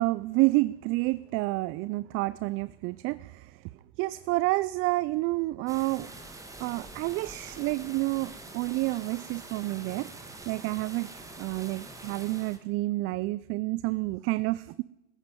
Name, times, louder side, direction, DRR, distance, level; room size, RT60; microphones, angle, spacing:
voice 1, 0.0-3.5 4.0-6.1 6.6-10.1 10.5-11.1 11.4-14.8, right 21 dB, 40° right, 18 dB, 0.5 m, -29 dB
sound 1, 5.7-12.6, right 2 dB, 10° right, 2.5 m, -45 dB
14.5 x 9.6 x 9.8 m, 0.94 s
hypercardioid pair, 105°, 34 cm